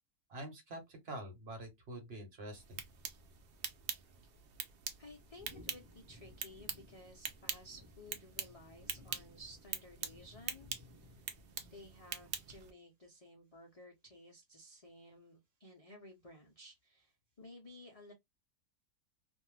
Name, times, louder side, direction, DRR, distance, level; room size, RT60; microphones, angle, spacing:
voice 1, 0.3-2.8, right 1 dB, 45° right, 1.0 m, -46 dB
sound 1, 2.5-12.7, right 7 dB, 80° right, 0.5 m, -45 dB
voice 2, 5.0-11.2 11.7-18.1, left 1 dB, 65° left, 0.3 m, -56 dB
sound 2, 5.4-12.1, left 1 dB, 25° right, 0.8 m, -60 dB
2.5 x 2.2 x 3.2 m
omnidirectional pair, 1.6 m